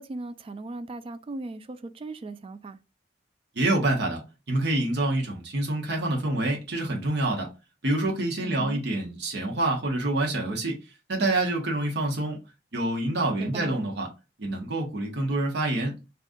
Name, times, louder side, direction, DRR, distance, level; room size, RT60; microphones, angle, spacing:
voice 1, 0.0-2.8 8.4-8.8 13.4-13.8, right 3 dB, 30° right, 0.3 m, -37 dB
voice 2, 3.5-4.2 4.5-7.5 7.8-10.8 11.1-12.4 12.7-14.1 14.4-16.0, right 2 dB, 70° right, 1.0 m, -27 dB
3.6 x 2.4 x 2.5 m
head